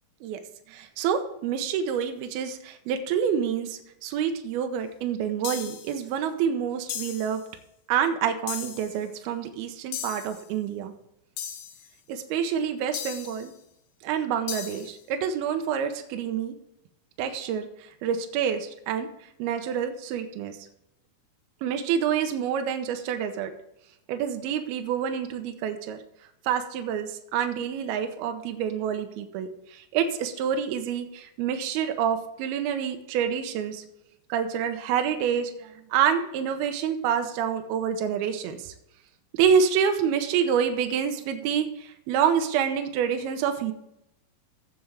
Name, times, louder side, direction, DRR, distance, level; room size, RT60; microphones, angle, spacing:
voice 1, 0.7-7.4 7.9-10.9 12.1-13.5 14.0-16.5 17.2-19.1 19.4-20.6 21.6-23.5 24.1-26.0 26.4-33.8 34.3-38.7 39.3-43.7, right 8 dB, 75° right, 7 dB, 2.5 m, -27 dB
sound 1, 5.4-6.0 6.9-7.4 8.5-9.0 9.9-10.4 11.4-11.9 12.9-13.5 14.5-14.9, left 9 dB, 85° left, 3.2 m, -36 dB
15.0 x 7.0 x 3.4 m, 0.82 s
omnidirectional pair, 4.9 m